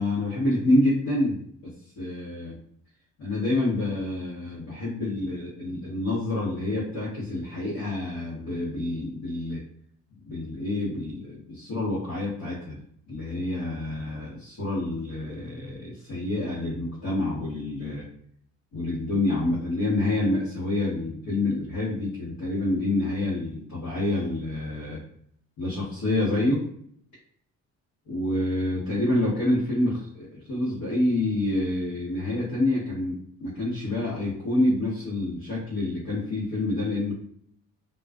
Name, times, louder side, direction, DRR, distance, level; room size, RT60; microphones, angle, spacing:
voice 1, 0.0-1.7 2.0-2.5 3.2-9.6 10.3-12.8 13.1-18.1 18.7-25.0 25.6-26.7 28.1-37.1, left 2 dB, 85° left, -9 dB, 1.1 m, -27 dB
2.3 x 2.3 x 2.3 m, 0.66 s
cardioid pair, 90°, 30 cm